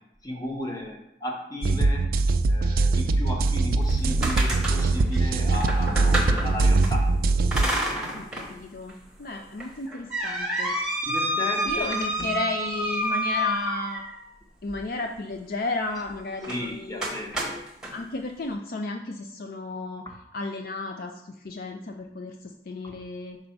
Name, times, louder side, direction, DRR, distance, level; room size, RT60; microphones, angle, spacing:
voice 1, 0.2-2.1 2.5-7.1 9.3-9.4 11.0-12.3 13.1-13.2 16.5-17.6 22.8-22.9, equal, 20° left, 0 dB, 1.1 m, -34 dB
sound 1, 1.6-7.6, right 3 dB, 55° right, 0.4 m, -22 dB
sound 2, 3.8-6.9 7.5-8.5 8.9-9.0 9.6-14.3 16.4-16.6 17.0-17.9, equal, 5° right, 1.1 m, -29 dB
voice 2, 8.1-10.8 11.6-14.0 14.6-17.1 17.9-20.0 20.3-23.4, left 2 dB, 55° left, 4 dB, 0.4 m, -33 dB
5.3 x 4.3 x 5.8 m, 0.81 s
head